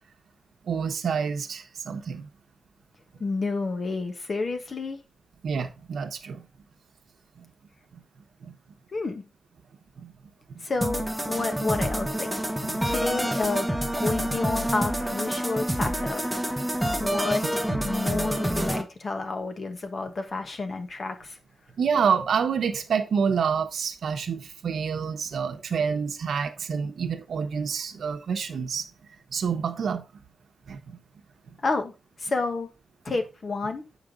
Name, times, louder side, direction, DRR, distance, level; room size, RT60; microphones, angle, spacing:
voice 1, 0.7-2.3 5.4-6.4 8.4-8.5 10.0-10.1 10.5-10.6 12.6-12.8 16.8-17.0 17.7-17.8 21.8-28.9 29.3-30.0 30.7-31.0, right 6 dB, 85° right, 0.9 m, -28 dB
voice 2, 3.2-5.0 8.9-9.3 10.6-12.3 12.8-13.7 14.0-16.3 17.0-21.4 31.6-31.9 32.2-32.7 33.0-33.8, left 3 dB, 50° left, 1.3 m, -30 dB
sound 1, 10.8-18.8, right 1 dB, ahead, 1.0 m, -27 dB
8.0 x 5.1 x 3.8 m
wide cardioid pair, 115°, 0 cm